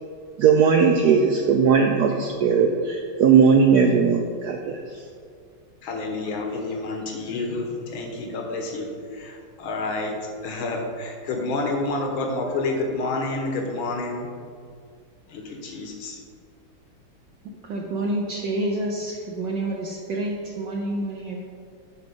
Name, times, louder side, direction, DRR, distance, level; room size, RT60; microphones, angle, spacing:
voice 1, 0.4-5.0, right 6 dB, 90° right, 4 dB, 0.8 m, -18 dB
voice 2, 5.8-14.3 15.3-16.2, left 2 dB, 75° left, 2 dB, 1.9 m, -29 dB
voice 3, 17.6-21.4, right 1 dB, 65° right, -1 dB, 1.3 m, -28 dB
9.2 x 5.2 x 5.3 m, 2.2 s
omnidirectional pair, 2.3 m